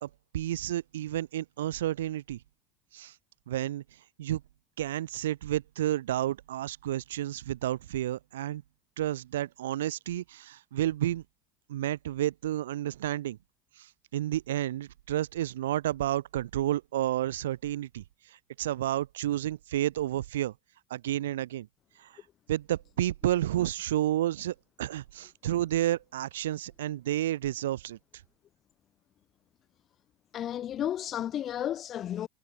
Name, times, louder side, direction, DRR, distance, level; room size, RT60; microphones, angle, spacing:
voice 1, 0.0-2.4 2.9-3.1 3.5-3.8 4.2-4.4 4.8-8.6 9.0-11.2 11.7-13.4 13.8-18.0 18.6-20.5 20.9-21.7 22.0-22.1 22.5-28.0, right 13 dB, 80° right, 1.1 m, -31 dB
voice 2, 30.3-32.3, left 11 dB, 45° left, 5.0 m, -32 dB
hypercardioid pair, 75°, 0 cm